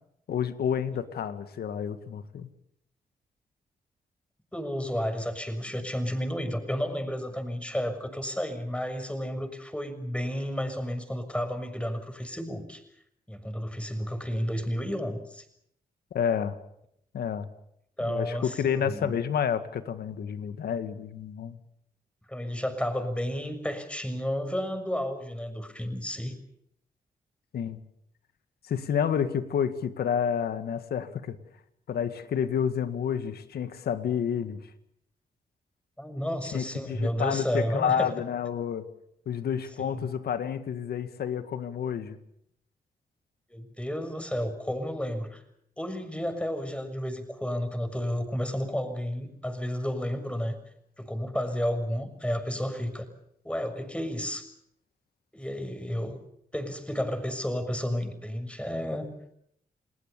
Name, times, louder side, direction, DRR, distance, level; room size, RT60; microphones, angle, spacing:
voice 1, 0.3-2.5 16.1-16.6 17.1-17.5 18.0-21.6 27.5-27.8 28.7-31.4 31.9-34.6 36.5-38.8 39.3-42.2, left 8 dB, 80° left, 11 dB, 1.9 m, -29 dB
voice 2, 4.5-12.8 13.3-15.4 18.0-18.6 18.9-19.1 22.3-26.4 36.0-38.1 39.8-40.1 43.5-45.4 45.8-50.5 51.0-53.0 53.4-54.5 55.3-56.2 56.5-59.1, equal, 5° left, 8 dB, 6.6 m, -32 dB
29.5 x 19.5 x 7.0 m, 0.73 s
cardioid pair, 55°, 16 cm